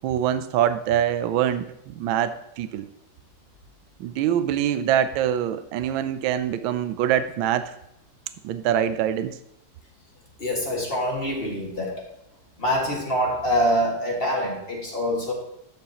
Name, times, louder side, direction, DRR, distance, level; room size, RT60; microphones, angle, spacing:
voice 1, 0.0-2.9 4.0-7.7 8.4-9.4, right 10 dB, 85° right, 12 dB, 1.4 m, -24 dB
voice 2, 10.4-12.1 12.6-15.3, equal, 30° left, -1 dB, 2.0 m, -25 dB
12.0 x 7.4 x 2.9 m, 0.81 s
omnidirectional pair, 2.1 m